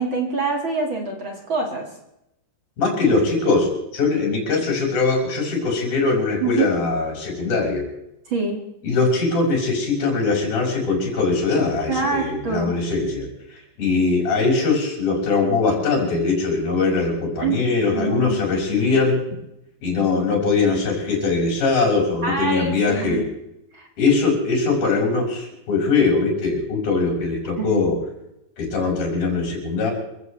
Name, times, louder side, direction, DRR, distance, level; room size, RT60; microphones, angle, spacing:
voice 1, 0.0-1.9 6.4-6.7 8.3-8.6 11.9-12.7 17.4-17.6 17.9-18.5 22.2-23.2 23.7-23.9 27.6-27.8, right 4 dB, 45° right, 2 dB, 1.6 m, -25 dB
voice 2, 2.8-7.8 8.8-19.2 19.8-23.2 24.0-28.0 28.6-29.9, left 4 dB, 50° left, 0 dB, 7.5 m, -21 dB
28.0 x 15.5 x 3.3 m, 0.84 s
omnidirectional pair, 5.3 m